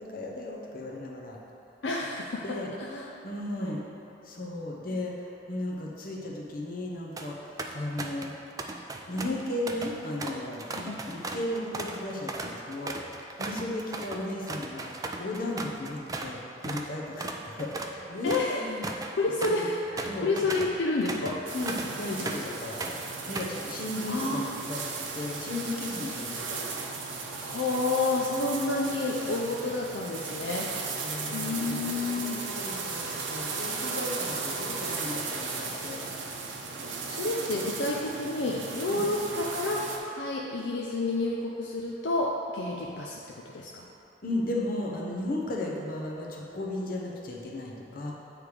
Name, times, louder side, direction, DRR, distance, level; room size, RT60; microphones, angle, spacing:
voice 1, 0.0-1.4 2.4-2.7 3.2-3.8 4.2-8.3 9.1-10.6 11.1-18.9 19.4-19.7 20.1-20.6 21.5-22.8 23.3-24.4 24.7-26.6 28.4-28.5 31.0-36.1 38.9-39.1 44.2-48.1, left 1 dB, 50° left, -2 dB, 0.9 m, -35 dB
voice 2, 1.8-2.4 2.8-3.1 3.5-3.8 4.9-5.0 10.7-11.0 18.2-18.7 19.2-21.4 24.1-24.4 27.4-30.7 31.3-32.4 37.1-43.2 43.5-43.8, left 2 dB, 70° left, -3 dB, 0.5 m, -30 dB
sound 1, 6.9-7.3 7.6-8.3 8.6-16.3 16.6-16.9 17.2-22.5 22.8-23.6, right 2 dB, 20° right, 0.3 m, -37 dB
sound 2, 21.5-40.0, right 4 dB, 85° right, 0.8 m, -36 dB
8.8 x 3.3 x 4.8 m, 2.9 s
head